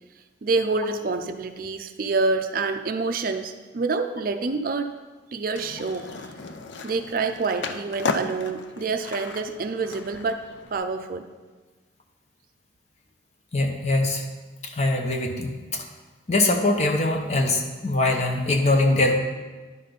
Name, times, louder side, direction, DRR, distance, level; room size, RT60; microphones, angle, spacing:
voice 1, 0.4-4.9 5.3-6.3 6.8-11.3, right 3 dB, 50° right, 7 dB, 0.4 m, -27 dB
Skateboard, 5.5-10.8, left 4 dB, 70° left, 0.5 m, -34 dB
voice 2, 13.5-14.3 14.6-15.8 16.3-19.2, left 2 dB, 35° left, 3 dB, 0.8 m, -22 dB
11.0 x 4.2 x 5.1 m, 1.3 s
head